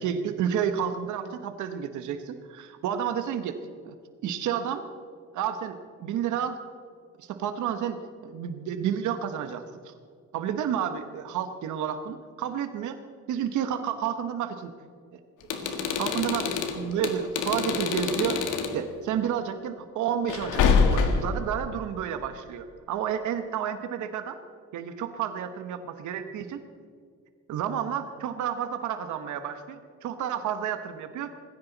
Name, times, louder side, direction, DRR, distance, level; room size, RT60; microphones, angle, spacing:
voice 1, 0.0-3.6 3.8-3.9 4.2-4.9 5.3-6.6 7.2-9.9 10.3-13.0 13.3-14.7 15.1-15.2 15.6-18.4 18.7-20.7 20.9-24.4 24.7-26.6 27.5-31.5, right 9 dB, 75° right, 8 dB, 1.1 m, -31 dB
sound 1, 15.4-18.8 20.3-21.4, left 5 dB, 80° left, 1.9 m, -25 dB
19.0 x 16.0 x 4.0 m, 2.1 s
cardioid pair, 160°, 30 cm